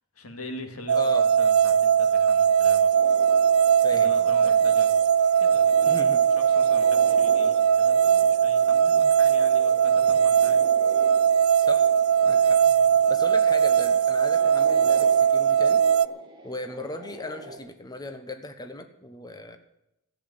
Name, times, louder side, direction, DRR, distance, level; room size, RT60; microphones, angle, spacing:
voice 1, 0.1-2.9 3.9-4.9 5.4-6.1 6.5-10.6 12.6-12.9, left 2 dB, 80° left, 5 dB, 2.4 m, -42 dB
voice 2, 0.9-1.3 3.8-4.6 5.9-6.2 11.6-11.9 12.2-12.6 13.1-15.8 16.4-19.6, left 2 dB, 20° left, 7 dB, 1.1 m, -38 dB
sound 1, 0.9-16.1, right 8 dB, 85° right, 0.5 m, -20 dB
sound 2, 2.9-17.6, right 2 dB, 20° right, 2.5 m, -44 dB
14.0 x 8.4 x 9.6 m, 0.85 s
head